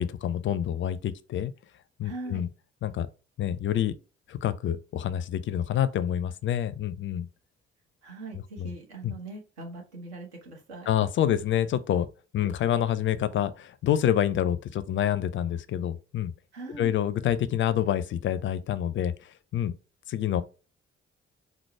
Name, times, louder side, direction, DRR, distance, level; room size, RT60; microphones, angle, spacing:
voice 1, 0.0-1.5 2.0-2.5 2.8-3.1 3.4-3.9 4.3-7.3 8.6-8.7 9.0-9.1 10.9-12.1 12.3-16.3 16.8-19.1 19.5-19.7 20.1-20.4, left 10 dB, 35° left, 0.4 m, -27 dB
voice 2, 2.0-2.5 8.0-10.9 12.4-12.5 16.5-16.9, right 3 dB, 75° right, 0.9 m, -41 dB
4.5 x 2.0 x 4.2 m
figure-of-eight pair, 40°, 33 cm